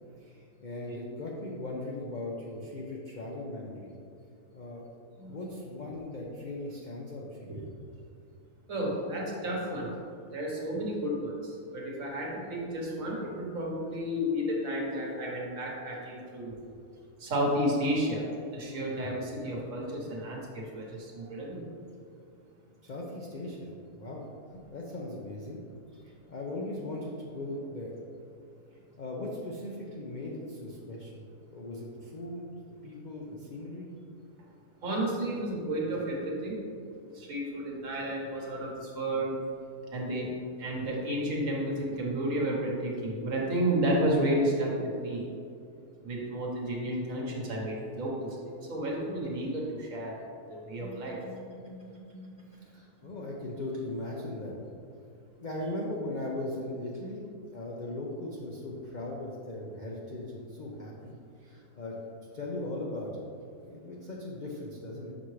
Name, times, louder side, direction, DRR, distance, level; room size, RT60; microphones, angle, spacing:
voice 1, 0.2-3.9 4.5-4.9 5.3-7.6 22.8-24.2 24.5-25.6 26.3-27.9 29.0-32.5 32.8-33.9 50.8-54.5 55.4-62.0 62.3-63.1 63.6-65.1, left 1 dB, 70° left, -3 dB, 0.4 m, -39 dB
voice 2, 5.2-5.5 7.5-7.6 8.7-9.9 10.3-16.5 17.2-21.6 34.8-36.6 37.1-39.3 39.9-40.3 40.6-45.3 46.0-50.2 50.5-51.2, right 1 dB, 60° right, -2 dB, 1.4 m, -32 dB
6.3 x 5.7 x 3.1 m, 2.5 s
omnidirectional pair, 1.7 m